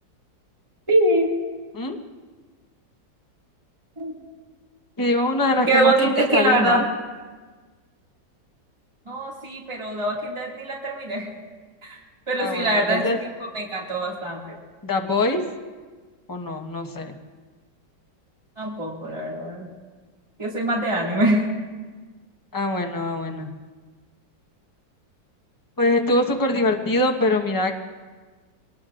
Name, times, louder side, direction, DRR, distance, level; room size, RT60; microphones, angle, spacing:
voice 1, 0.9-1.3 4.0-4.2 5.7-6.8 9.1-11.3 11.8-12.0 12.3-14.5 18.6-19.7 20.4-21.5, right 1 dB, 15° right, -4 dB, 2.3 m, -23 dB
voice 2, 5.0-6.9 12.4-13.2 14.8-15.4 16.3-17.2 22.5-23.5 25.8-27.7, left 2 dB, 15° left, 2 dB, 0.9 m, -23 dB
24.0 x 19.5 x 2.5 m, 1.4 s
omnidirectional pair, 2.0 m